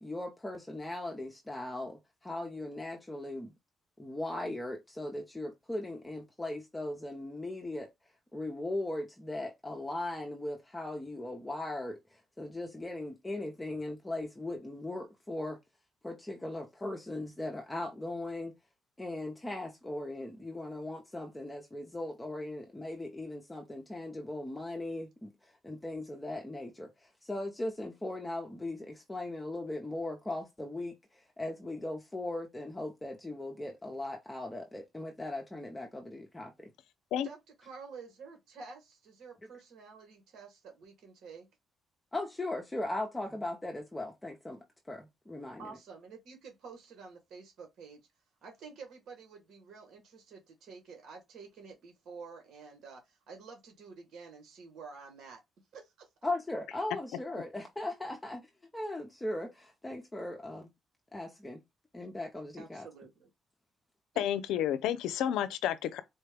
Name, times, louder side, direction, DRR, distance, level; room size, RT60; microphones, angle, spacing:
voice 1, 0.0-3.5 4.0-7.9 8.3-15.6 16.0-18.5 19.0-36.7 42.1-45.8 56.2-58.5 58.7-60.7 61.1-61.6 61.9-62.9, left 2 dB, 15° left, 0.7 m, -38 dB
voice 2, 37.2-41.5 45.6-48.0 48.4-55.4 55.7-56.1 62.6-63.3 64.1-64.2, right 5 dB, 75° right, 1.3 m, -50 dB
voice 3, 64.2-66.0, left 10 dB, 90° left, 0.4 m, -30 dB
4.2 x 2.2 x 3.3 m
cardioid pair, 90°, 0 cm